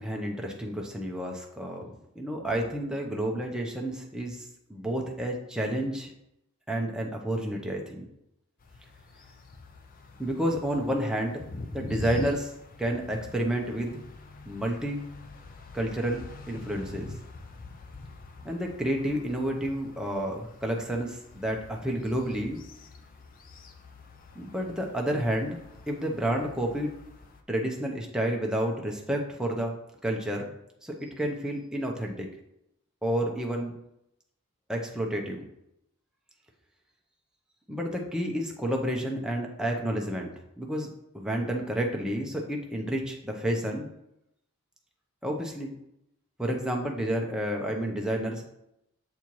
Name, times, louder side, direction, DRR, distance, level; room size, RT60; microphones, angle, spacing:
voice 1, 0.0-6.1 6.7-8.1 10.2-11.4 11.7-12.5 12.8-14.0 14.4-15.0 15.7-17.1 18.4-22.6 24.4-25.6 25.9-26.9 27.5-29.7 30.0-30.5 30.8-32.3 33.0-33.7 34.7-35.4 37.7-40.9 41.1-43.9 45.2-45.7 46.4-48.4, right 1 dB, 5° right, 0 dB, 0.7 m, -30 dB
sound 1, 8.6-27.4, left 3 dB, 40° left, 0.5 m, -45 dB
7.1 x 4.2 x 3.1 m, 0.81 s
head